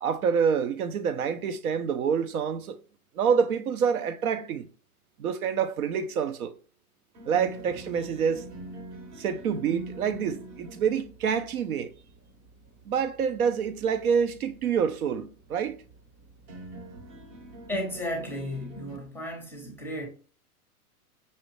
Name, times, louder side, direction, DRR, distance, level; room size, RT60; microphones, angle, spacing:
voice 1, 0.0-2.8 3.2-4.7 5.2-6.5 7.3-8.5 9.2-11.9 12.9-15.8, right 7 dB, 70° right, 0.6 m, -27 dB
sound 1, 7.1-19.0, right 2 dB, 35° right, 0.8 m, -45 dB
voice 2, 17.7-20.1, equal, 5° left, 0.6 m, -34 dB
5.3 x 2.4 x 3.0 m
hypercardioid pair, 115°, 45 cm